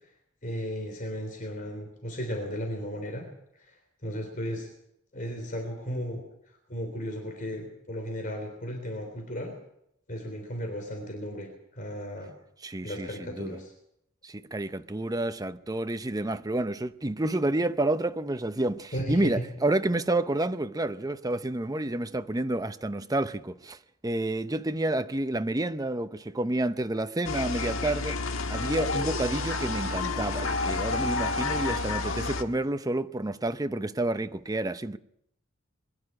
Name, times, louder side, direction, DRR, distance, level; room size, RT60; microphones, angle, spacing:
voice 1, 0.4-3.3 3.7-3.8 4.0-4.7 5.1-6.2 6.7-9.6 10.1-11.5 11.7-12.3 12.8-13.7 18.9-19.4, equal, 40° left, 3.6 m, -35 dB
voice 2, 12.6-13.6 14.2-23.8 24.0-28.2 28.5-35.0, right 2 dB, 20° right, 0.7 m, -29 dB
sound 1, 27.2-32.4, left 3 dB, 80° left, 1.5 m, -30 dB
22.5 x 11.5 x 9.8 m
head